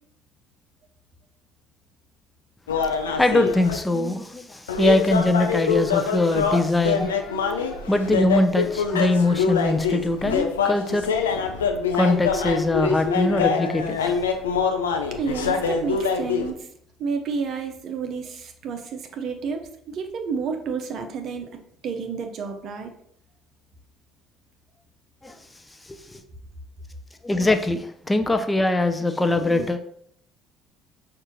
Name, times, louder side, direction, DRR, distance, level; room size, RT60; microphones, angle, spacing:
sound 1, 2.7-3.8 4.7-16.5, left 6 dB, 85° left, 0.3 m, -24 dB
voice 1, 2.9-11.1 11.9-14.2 25.2-25.4 25.8-26.2 27.2-29.8, left 2 dB, 15° left, 7 dB, 0.5 m, -22 dB
voice 2, 15.2-16.7 17.0-19.6 19.9-21.5 21.8-22.9, right 5 dB, 55° right, 4 dB, 0.5 m, -30 dB
5.4 x 2.5 x 2.9 m, 0.68 s
figure-of-eight pair, 55°, 0 cm